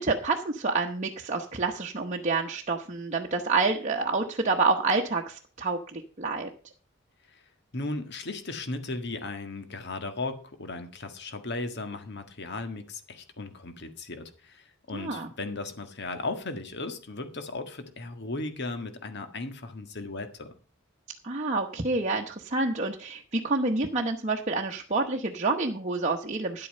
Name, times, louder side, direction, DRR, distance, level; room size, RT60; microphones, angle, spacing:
voice 1, 0.0-6.5 14.9-15.3 21.2-26.7, right 3 dB, 35° right, 0 dB, 1.0 m, -28 dB
voice 2, 7.7-20.5, left 2 dB, 55° left, 8 dB, 1.7 m, -36 dB
10.5 x 8.4 x 5.5 m, 0.38 s
head